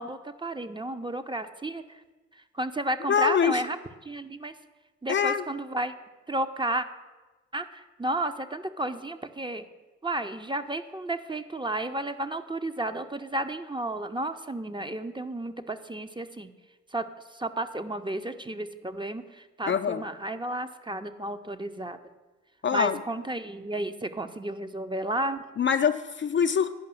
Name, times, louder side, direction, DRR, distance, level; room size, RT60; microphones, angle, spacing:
voice 1, 0.0-1.8 2.5-3.8 4.0-4.5 5.0-5.9 6.3-6.9 7.5-9.6 10.0-16.5 16.9-17.1 17.3-22.0 22.7-25.4, right 1 dB, 15° right, 8 dB, 0.7 m, -32 dB
voice 2, 3.1-3.6 5.1-5.4 19.7-20.0 22.6-23.0 25.6-26.7, left 7 dB, 35° left, 8 dB, 0.5 m, -24 dB
9.7 x 5.4 x 7.6 m, 1.2 s
hypercardioid pair, 40°, 33 cm